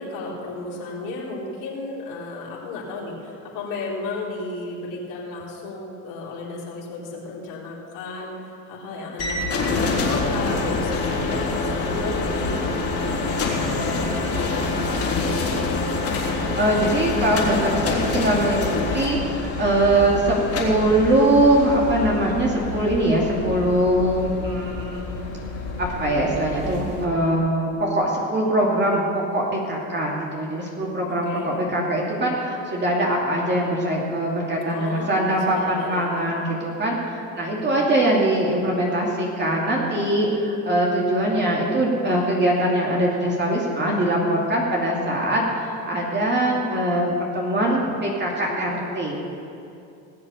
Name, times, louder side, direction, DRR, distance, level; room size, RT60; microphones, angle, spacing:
voice 1, 0.0-12.6 13.0-15.6 31.1-31.6 34.7-36.3 37.5-37.8, left 3 dB, 75° left, -4 dB, 4.2 m, -34 dB
sound 1, 9.2-27.1, left 3 dB, 35° left, 3.4 m, -26 dB
voice 2, 16.5-25.0 25.8-49.1, right 1 dB, 25° right, -3 dB, 2.8 m, -22 dB
19.0 x 7.6 x 7.1 m, 2.6 s
supercardioid pair, 100°, 39 cm